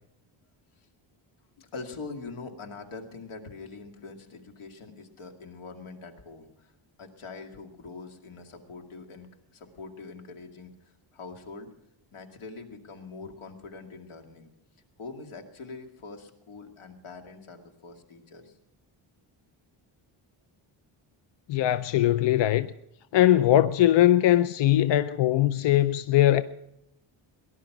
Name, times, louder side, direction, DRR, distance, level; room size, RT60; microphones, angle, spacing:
voice 1, 1.6-6.7 7.0-11.7 12.1-14.5 15.0-18.6, left 4 dB, 85° left, 2.3 m, -43 dB
voice 2, 21.5-22.7 23.1-26.4, left 13 dB, 60° left, 0.5 m, -21 dB
19.5 x 11.5 x 5.9 m
wide cardioid pair, 165°, 48 cm